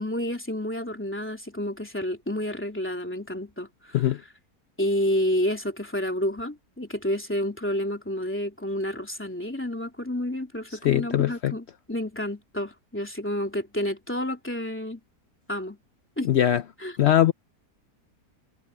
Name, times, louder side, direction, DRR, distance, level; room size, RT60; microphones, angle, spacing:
voice 1, 0.0-4.0 4.8-15.0 15.5-15.8 16.2-16.3 16.8-16.9, left 1 dB, 5° left, 3.1 m, -30 dB
voice 2, 10.7-11.5 16.2-16.6 17.0-17.3, left 11 dB, 60° left, 0.7 m, -21 dB
omnidirectional pair, 1.7 m